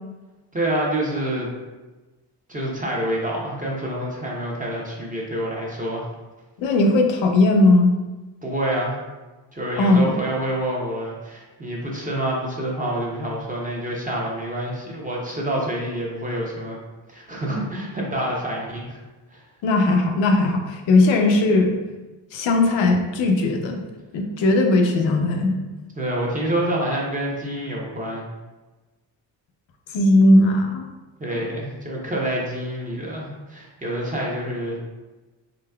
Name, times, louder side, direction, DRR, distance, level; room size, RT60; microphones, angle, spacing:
voice 1, 0.5-1.5 2.5-6.0 8.4-8.9 9.5-16.8 17.1-19.0 19.3-19.4 26.0-28.2 31.2-34.8, right 1 dB, 20° right, -3 dB, 0.7 m, -27 dB
voice 2, 6.6-7.9 9.8-10.1 19.6-21.7 22.3-23.8 24.1-25.6 29.9-30.9 31.3-31.5, left 2 dB, 80° left, 4 dB, 0.7 m, -18 dB
3.9 x 3.6 x 2.3 m, 1.2 s
cardioid pair, 120°, 45 cm